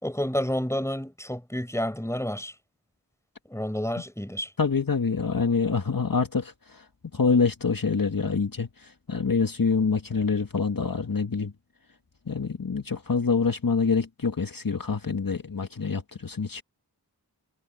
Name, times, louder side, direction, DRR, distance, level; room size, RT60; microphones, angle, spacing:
voice 1, 0.0-2.5 3.5-4.5, equal, 5° left, 4.7 m, -29 dB
voice 2, 4.6-6.5 7.1-8.7 9.1-11.5 12.3-16.6, left 5 dB, 55° left, 1.7 m, -25 dB
wide cardioid pair, 40°, 40 cm